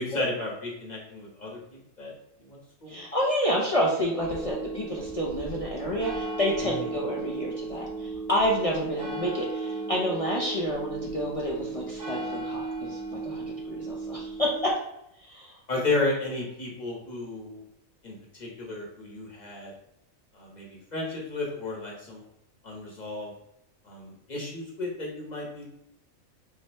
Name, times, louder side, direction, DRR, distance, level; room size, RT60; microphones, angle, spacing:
voice 1, 0.0-2.1 2.4-3.1 6.6-6.9 15.7-17.6 18.0-19.7 20.3-22.2 22.6-23.3 23.8-25.6, left 2 dB, 35° left, -3 dB, 1.1 m, -33 dB
voice 2, 2.9-14.8 15.2-15.6, equal, 65° left, -3 dB, 0.3 m, -29 dB
sound 1, 4.2-14.7, right 3 dB, 20° right, 0.8 m, -35 dB
3.1 x 2.7 x 4.3 m, 0.79 s
omnidirectional pair, 1.4 m